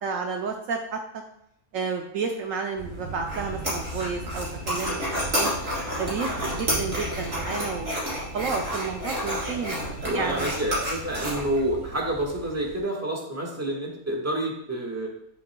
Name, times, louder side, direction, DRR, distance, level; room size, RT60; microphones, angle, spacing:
voice 1, 0.0-1.2 1.7-5.5 6.0-9.8 10.1-10.5, right 5 dB, 70° right, 3 dB, 1.0 m, -31 dB
Thunder, 2.7-12.8, right 2 dB, 85° right, 3.2 m, -39 dB
sound 1, 3.3-11.6, equal, 50° right, 3.3 m, -30 dB
voice 2, 10.0-15.1, right 1 dB, 10° right, -2 dB, 1.4 m, -28 dB
10.5 x 6.6 x 2.2 m, 0.77 s
omnidirectional pair, 1.6 m